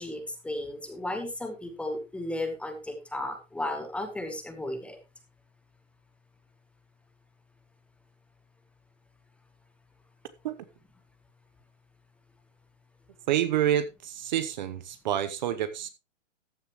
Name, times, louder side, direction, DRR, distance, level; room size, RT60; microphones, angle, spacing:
voice 1, 0.0-5.0, left 1 dB, 5° left, 0.9 m, -34 dB
voice 2, 13.3-15.9, right 11 dB, 35° right, 0.8 m, -28 dB
14.0 x 9.7 x 3.0 m
hypercardioid pair, 145°, 39 cm